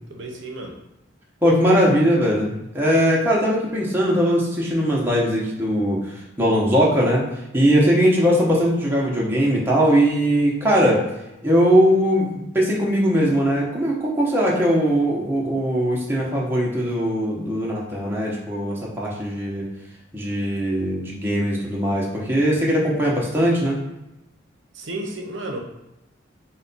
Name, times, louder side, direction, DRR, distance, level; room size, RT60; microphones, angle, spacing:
voice 1, 0.1-0.8 24.7-25.6, right 1 dB, 65° right, 2 dB, 0.6 m, -32 dB
voice 2, 1.4-7.2 7.5-11.0 11.4-19.7 20.1-23.8, equal, 10° right, -4 dB, 0.7 m, -20 dB
4.6 x 2.2 x 3.9 m, 0.94 s
head